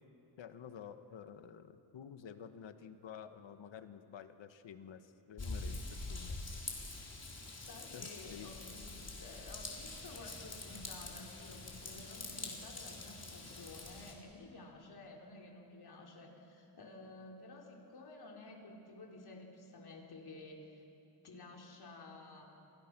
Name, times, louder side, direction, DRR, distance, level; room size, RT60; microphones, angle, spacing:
voice 1, 0.4-6.4 7.9-8.5 12.4-12.5, left 8 dB, 85° left, 9 dB, 1.5 m, -51 dB
Raindrop / Vehicle horn car horn honking / Trickle dribble, 5.4-14.1, left 3 dB, 35° left, 3.9 m, -45 dB
voice 2, 7.7-20.8 21.2-22.4, left 2 dB, 55° left, 0 dB, 4.1 m, -52 dB
28.0 x 26.5 x 6.1 m, 2.7 s
wide cardioid pair, 125°, 44 cm